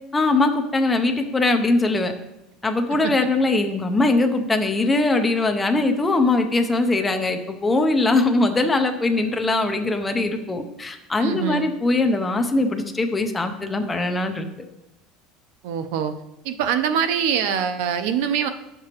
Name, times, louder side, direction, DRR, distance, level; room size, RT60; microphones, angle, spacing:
voice 1, 0.1-2.1 2.6-14.5, left 2 dB, 10° left, 5 dB, 0.5 m, -21 dB
voice 2, 11.2-11.7 15.6-16.1 16.4-18.5, right 8 dB, 70° right, 9 dB, 0.5 m, -23 dB
9.3 x 6.7 x 2.9 m, 0.92 s
cardioid pair, 170°, 0 cm